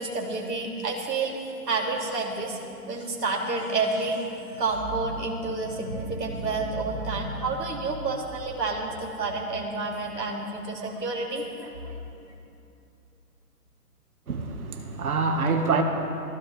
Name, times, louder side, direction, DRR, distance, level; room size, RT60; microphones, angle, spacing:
voice 1, 0.0-1.3 1.7-2.6 2.9-4.2 4.5-11.9 12.2-12.3, right 3 dB, 80° right, -1 dB, 2.9 m, -29 dB
voice 2, 14.3-15.8, right 4 dB, 60° right, 4 dB, 2.0 m, -26 dB
18.5 x 15.5 x 4.5 m, 2.7 s
hypercardioid pair, 170°, 48 cm